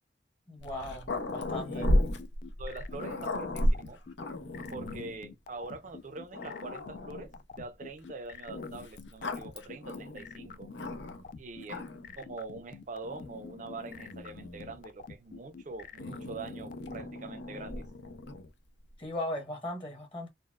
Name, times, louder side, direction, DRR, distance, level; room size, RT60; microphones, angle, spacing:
voice 1, 0.5-1.9 19.0-20.3, left 1 dB, 30° left, 1.0 m, -38 dB
Growling, 0.6-5.2 5.9-6.0 6.3-7.4 8.5-11.3 11.6-12.2 13.0-14.9 16.0-18.5, left 1 dB, 80° left, 0.7 m, -34 dB
sound 1, 2.2-17.0, left 5 dB, 50° left, 0.3 m, -47 dB
voice 2, 2.6-4.0 4.7-10.7 11.4-11.8 12.2-17.9, right 3 dB, 45° right, 0.6 m, -44 dB
4.0 x 2.1 x 2.2 m
head